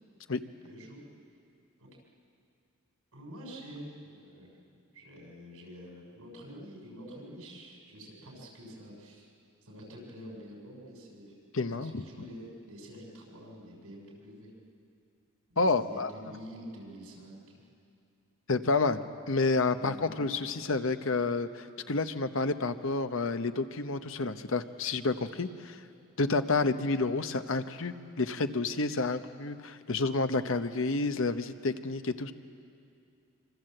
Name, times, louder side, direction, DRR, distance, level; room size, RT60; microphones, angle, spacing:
voice 1, 0.6-1.0 1.8-1.9 3.1-4.5 4.9-9.3 9.6-11.3 11.7-14.5 15.5-17.7 19.8-20.1, equal, 85° right, -1 dB, 6.5 m, -47 dB
voice 2, 11.5-12.0 15.6-16.1 18.5-25.8 26.2-32.3, left 3 dB, 60° left, 9 dB, 1.0 m, -29 dB
26.0 x 25.0 x 7.8 m, 2.5 s
head